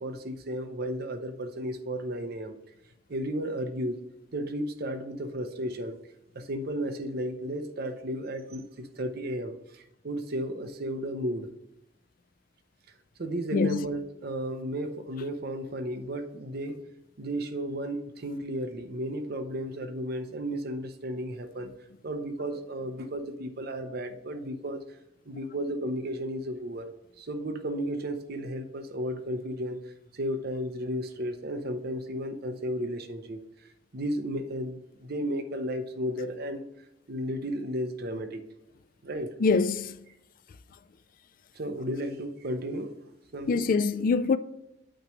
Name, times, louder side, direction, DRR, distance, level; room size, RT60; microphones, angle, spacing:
voice 1, 0.0-2.6 3.1-4.0 4.3-5.9 6.3-11.5 13.2-16.8 17.2-21.7 22.0-24.8 25.3-26.9 27.2-29.8 30.1-33.4 33.9-36.6 37.1-38.4 39.0-39.3 41.5-42.9 43.3-43.7, equal, 55° right, 0.7 m, -33 dB
voice 2, 39.4-40.0 43.5-44.4, left 4 dB, 45° left, 0.4 m, -24 dB
8.8 x 3.0 x 6.3 m
head